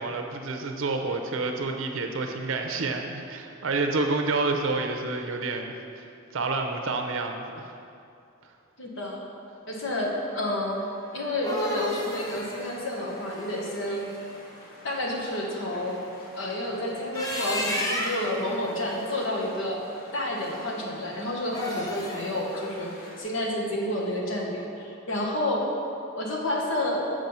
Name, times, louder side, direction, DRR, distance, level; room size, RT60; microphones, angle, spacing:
voice 1, 0.0-7.8, right 3 dB, 75° right, 4 dB, 0.6 m, -29 dB
voice 2, 8.8-9.2 9.7-10.9 11.1-14.0 14.8-16.0 16.4-19.8 20.1-25.7 26.1-27.0, left 1 dB, 65° left, -1 dB, 1.1 m, -30 dB
sound 1, 11.1-14.2 16.9-18.4 21.4-22.3, left 1 dB, 15° left, 0.7 m, -32 dB
sound 2, 12.0-23.2, equal, 45° left, 1.4 m, -48 dB
7.5 x 5.0 x 5.4 m, 2.5 s
head